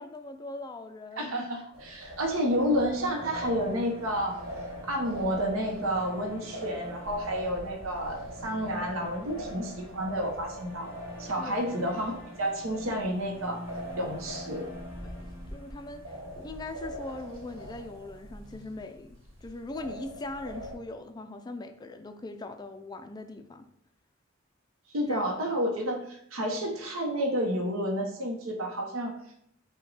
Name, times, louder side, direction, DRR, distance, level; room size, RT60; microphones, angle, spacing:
voice 1, 0.0-1.3 9.3-9.5 11.4-11.6 15.0-23.6 25.1-25.3, left 2 dB, 20° left, 7 dB, 0.3 m, -41 dB
voice 2, 1.2-4.4 4.8-10.9 11.2-13.6 14.0-14.7 24.9-29.2, equal, 85° right, 2 dB, 0.7 m, -30 dB
sound 1, 1.7-20.8, equal, 70° right, 1.3 m, -42 dB
sound 2, 3.0-17.1, left 1 dB, 15° right, 1.1 m, -47 dB
5.7 x 2.2 x 3.9 m, 0.71 s
head